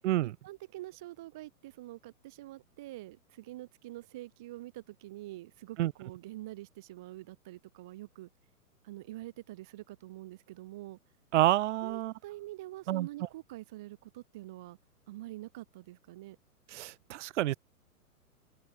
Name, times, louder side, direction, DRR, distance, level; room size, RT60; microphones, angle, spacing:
voice 1, 0.4-8.3 8.8-11.0 11.8-14.8 15.1-16.4, right 17 dB, 5° right, 0.3 m, -46 dB
voice 2, 11.3-12.1 12.9-13.1 16.7-17.6, right 15 dB, 50° right, 2.8 m, -28 dB
open air
hypercardioid pair, 130°, 45 cm